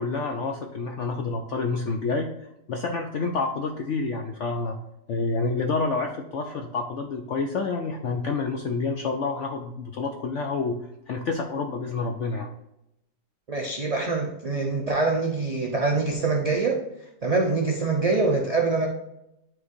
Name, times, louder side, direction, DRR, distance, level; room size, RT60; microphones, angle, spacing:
voice 1, 0.0-4.8 5.1-10.8 11.1-12.5, left 4 dB, 65° left, 3 dB, 0.7 m, -28 dB
voice 2, 13.5-16.8 17.2-18.9, right 3 dB, 45° right, 0 dB, 0.4 m, -24 dB
11.0 x 3.9 x 2.7 m, 0.86 s
omnidirectional pair, 1.8 m